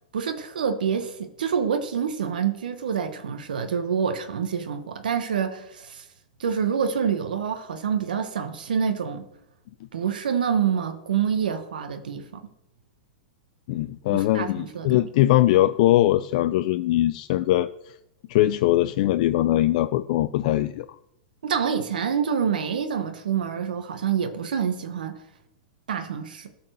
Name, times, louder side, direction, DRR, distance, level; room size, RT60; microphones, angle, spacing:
voice 1, 0.1-6.1 6.4-9.3 9.9-12.4 14.1-15.1 21.4-25.2 25.9-26.5, right 7 dB, 85° right, 1.0 m, -27 dB
voice 2, 13.7-17.7 18.3-20.9, left 14 dB, 60° left, 0.4 m, -21 dB
12.5 x 4.2 x 6.7 m
hypercardioid pair, 120°, 5 cm